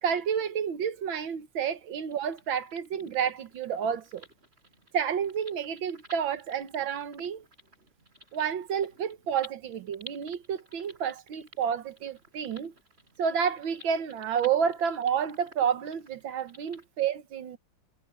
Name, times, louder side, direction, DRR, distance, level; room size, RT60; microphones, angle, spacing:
voice 1, 0.0-4.3 4.9-7.4 8.3-12.7 13.2-17.6, right 7 dB, 85° right, 2.0 m, -30 dB
sound 1, 2.1-16.8, equal, 30° right, 5.1 m, -53 dB
omnidirectional pair, 2.1 m